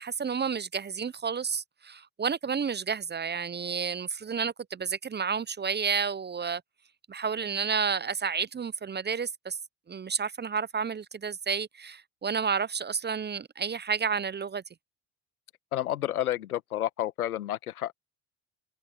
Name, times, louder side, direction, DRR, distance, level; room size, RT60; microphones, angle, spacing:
voice 1, 0.0-6.6 7.1-9.6 9.9-14.6, right 6 dB, 25° right, 0.7 m, -31 dB
voice 2, 15.7-17.9, left 13 dB, 90° left, 1.8 m, -30 dB
hypercardioid pair, 55°, 43 cm